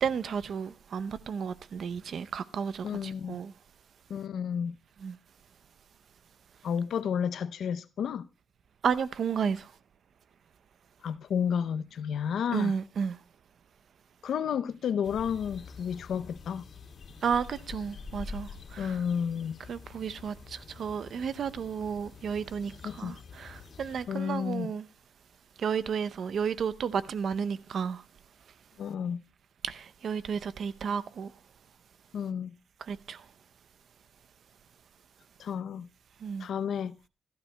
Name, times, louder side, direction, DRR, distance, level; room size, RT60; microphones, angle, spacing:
voice 1, 0.0-3.5 5.0-5.1 8.8-9.7 12.5-13.2 17.2-18.9 19.7-24.8 25.6-28.0 29.6-31.3 32.9-33.2 36.2-36.5, right 7 dB, 60° right, 0.6 m, -32 dB
voice 2, 2.8-3.4 4.1-4.8 6.6-8.3 11.0-12.8 14.2-16.6 18.8-19.6 22.8-23.2 24.1-24.7 28.8-29.2 32.1-32.5 35.4-35.9 36.4-36.9, left 7 dB, 70° left, 0.6 m, -31 dB
sound 1, 15.0-24.1, left 5 dB, 55° left, 2.4 m, -47 dB
25.5 x 12.5 x 2.2 m
cardioid pair, 115°, 0 cm